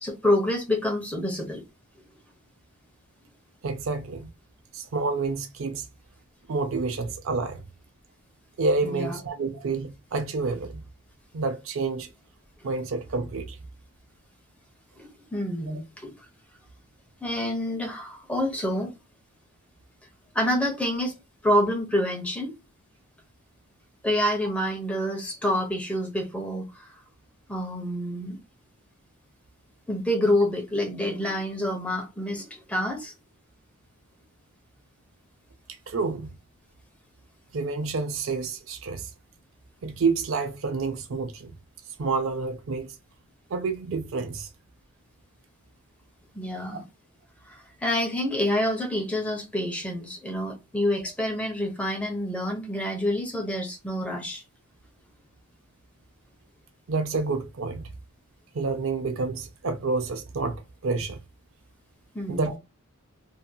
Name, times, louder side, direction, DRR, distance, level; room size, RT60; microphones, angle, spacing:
voice 1, 0.0-1.6 8.8-9.2 15.0-16.1 17.2-18.9 20.3-21.1 21.4-22.5 24.0-26.9 27.5-28.4 29.9-33.1 46.3-46.8 47.5-54.4 62.1-62.5, left 1 dB, 5° left, 0.8 m, -27 dB
voice 2, 3.6-4.3 4.7-5.9 6.5-7.6 8.6-10.8 11.3-12.1 12.6-13.6 35.9-36.3 37.5-39.1 39.8-41.5 42.0-43.0 43.5-44.5 56.9-57.9 58.5-61.2 62.3-62.6, right 4 dB, 65° right, 0.4 m, -28 dB
2.8 x 2.7 x 2.2 m
head